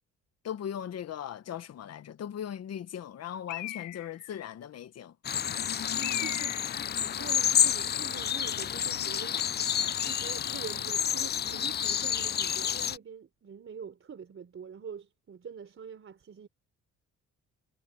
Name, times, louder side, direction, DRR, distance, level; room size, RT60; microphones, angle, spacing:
voice 1, 0.4-5.1, left 9 dB, 55° left, 1.2 m, -38 dB
Bird, 3.5-4.3 6.0-6.9, left 15 dB, 75° left, 0.7 m, -38 dB
sound 1, 5.2-13.0, left 9 dB, 35° left, 0.4 m, -29 dB
voice 2, 5.9-6.6 6.8-9.4 9.9-16.5, right 7 dB, 45° right, 4.0 m, -45 dB
cardioid pair, 90°, 30 cm